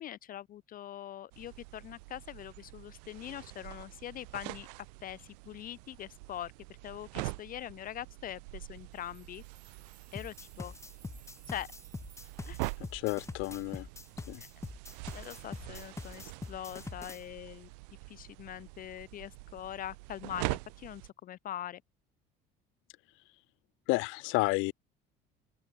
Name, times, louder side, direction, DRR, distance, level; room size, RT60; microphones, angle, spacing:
voice 1, 0.0-4.7 5.0-6.5 6.8-9.4 10.1-10.7 11.5-11.7 12.5-12.6 14.4-14.5 15.1-17.7 18.1-21.8, left 11 dB, 45° left, 0.4 m, -43 dB
sound 1, 1.3-21.1, right 27 dB, 90° right, 2.1 m, -44 dB
sound 2, 8.8-15.6 16.0-16.1 16.4-16.6 17.1-17.2, right 8 dB, 40° right, 4.1 m, -62 dB
sound 3, 10.2-17.2, left 3 dB, 15° left, 0.8 m, -44 dB
voice 2, 12.9-13.9 14.3-14.4 23.9-24.7, left 24 dB, 75° left, 0.9 m, -31 dB
open air
supercardioid pair, 85°, 20 cm